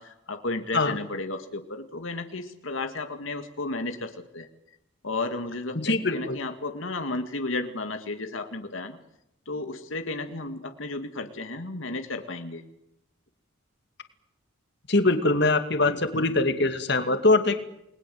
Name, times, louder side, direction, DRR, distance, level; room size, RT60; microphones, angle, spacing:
voice 1, 0.0-4.5 5.0-9.0 9.5-12.6 15.9-16.0, left 2 dB, 75° left, 6 dB, 2.0 m, -33 dB
voice 2, 5.8-6.4 14.9-17.6, left 2 dB, 55° left, 8 dB, 2.4 m, -22 dB
29.5 x 21.5 x 7.7 m, 0.84 s
head